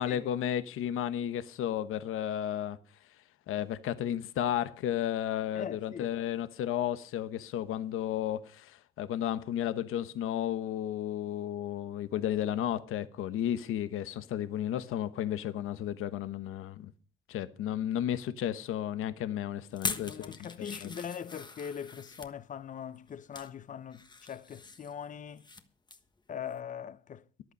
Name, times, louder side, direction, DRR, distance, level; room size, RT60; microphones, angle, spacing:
voice 1, 0.0-2.8 3.5-16.9 17.3-20.9, left 11 dB, 80° left, 1.0 m, -33 dB
voice 2, 5.5-6.1 19.8-25.5 26.3-27.2, left 8 dB, 35° left, 0.7 m, -41 dB
sound 1, 19.7-22.3 23.0-23.5 23.9-25.6 25.9-26.1 26.5-26.6, left 3 dB, 20° left, 1.3 m, -41 dB
14.0 x 11.5 x 5.2 m
cardioid pair, 130°, 21 cm